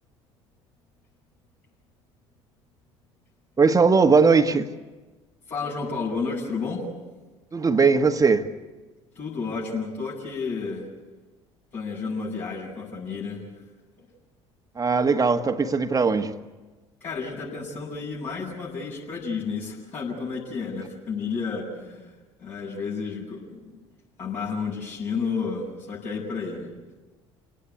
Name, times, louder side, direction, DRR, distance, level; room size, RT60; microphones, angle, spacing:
voice 1, 3.6-4.6 7.5-8.5 14.8-16.3, right 4 dB, 25° right, 1.5 m, -19 dB
voice 2, 5.5-6.9 9.1-10.8 11.7-13.5 17.0-22.1 22.4-23.7 24.2-26.7, left 4 dB, 50° left, 7.4 m, -31 dB
30.0 x 18.5 x 8.4 m
figure-of-eight pair, 60°, 15 cm